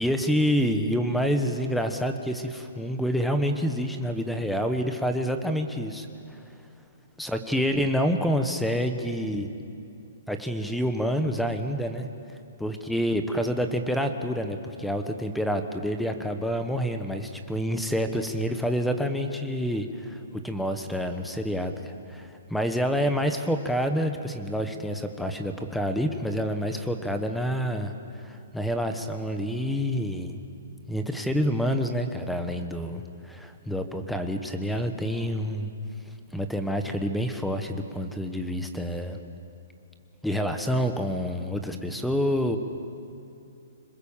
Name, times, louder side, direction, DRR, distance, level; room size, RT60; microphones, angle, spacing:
voice 1, 0.0-6.4 7.2-9.5 10.3-30.4 30.9-35.7 36.3-39.2 40.2-42.6, equal, ahead, 7 dB, 1.0 m, -28 dB
27.0 x 20.5 x 7.3 m, 2.6 s
hypercardioid pair, 160°, 0 cm